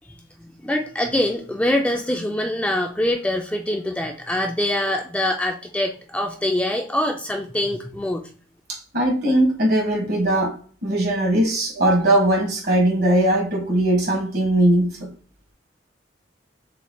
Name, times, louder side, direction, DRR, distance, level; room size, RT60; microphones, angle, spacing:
voice 1, 0.1-8.2, left 1 dB, 5° left, 0.4 m, -24 dB
voice 2, 8.7-10.5 10.8-15.1, right 1 dB, 55° right, 1.6 m, -20 dB
6.6 x 3.1 x 2.3 m
head